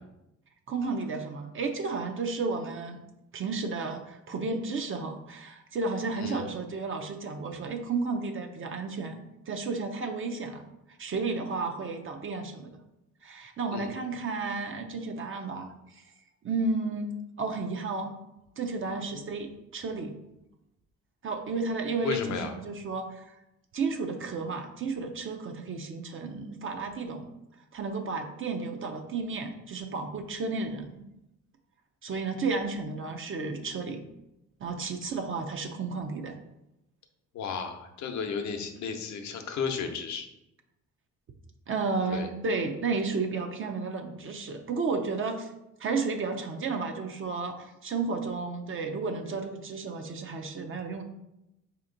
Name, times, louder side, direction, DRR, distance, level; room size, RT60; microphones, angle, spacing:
voice 1, 0.7-3.0 3.3-10.7 11.0-12.7 13.2-16.0 16.4-18.1 18.6-20.1 21.2-23.4 23.7-27.3 27.7-31.0 32.0-34.1 34.6-36.4 41.7-45.5 45.8-51.0, right 4 dB, 45° right, 4 dB, 0.6 m, -32 dB
voice 2, 22.0-22.5 37.3-40.3 42.1-42.3, left 6 dB, 70° left, 6 dB, 0.7 m, -34 dB
4.3 x 2.9 x 3.8 m, 0.89 s
cardioid pair, 90°, 30 cm